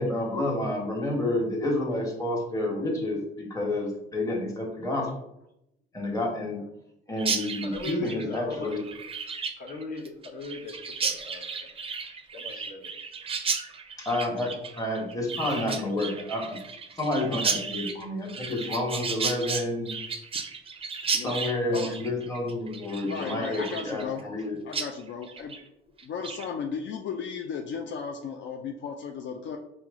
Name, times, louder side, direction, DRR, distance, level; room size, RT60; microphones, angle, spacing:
voice 1, 0.0-5.1 5.9-6.6 7.1-8.8 14.0-16.6 17.0-19.9 21.2-24.6, left 1 dB, 15° left, -1 dB, 1.2 m, -29 dB
Chirp tweet, 7.2-24.4 24.7-24.9 25.2-25.6 26.0-26.5, right 5 dB, 30° right, 0.4 m, -34 dB
voice 2, 7.6-9.0 9.6-11.7 12.3-12.9, left 2 dB, 45° left, 1 dB, 0.9 m, -39 dB
voice 3, 23.0-24.3 24.7-25.6 26.0-29.6, left 6 dB, 70° left, 4 dB, 0.4 m, -35 dB
4.5 x 2.1 x 3.5 m, 0.82 s
cardioid pair, 90°, 20 cm